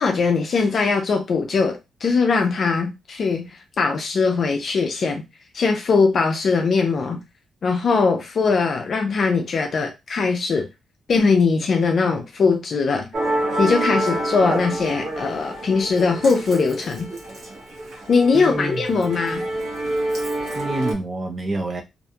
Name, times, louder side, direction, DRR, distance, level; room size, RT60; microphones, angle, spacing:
voice 1, 0.0-3.5 3.8-5.2 5.5-7.2 7.6-10.7 11.1-13.1 13.6-17.1 18.1-19.5, left 4 dB, 45° left, 0.4 m, -20 dB
Musical instrument, 13.1-20.9, right 1 dB, 55° right, 1.0 m, -27 dB
voice 2, 18.3-18.8 20.5-21.8, right 2 dB, 30° right, 0.5 m, -27 dB
2.5 x 2.2 x 2.7 m
cardioid pair, 145°, 0 cm